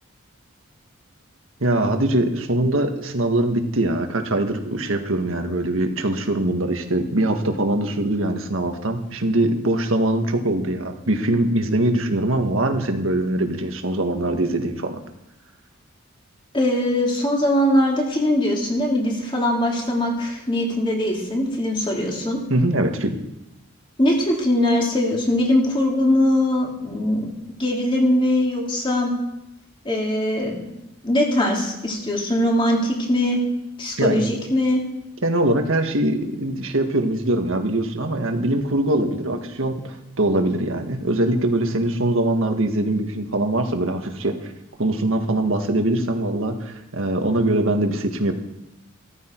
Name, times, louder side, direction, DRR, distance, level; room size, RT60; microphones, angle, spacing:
voice 1, 1.6-15.0 22.5-23.2 34.0-34.2 35.2-44.5 44.8-48.3, right 1 dB, 70° right, 5 dB, 1.7 m, -22 dB
voice 2, 16.5-22.4 24.0-27.3 27.6-29.1 29.8-30.7 31.0-33.4 33.8-34.8, left 1 dB, 25° left, -1 dB, 3.0 m, -21 dB
14.5 x 14.0 x 4.6 m, 0.88 s
head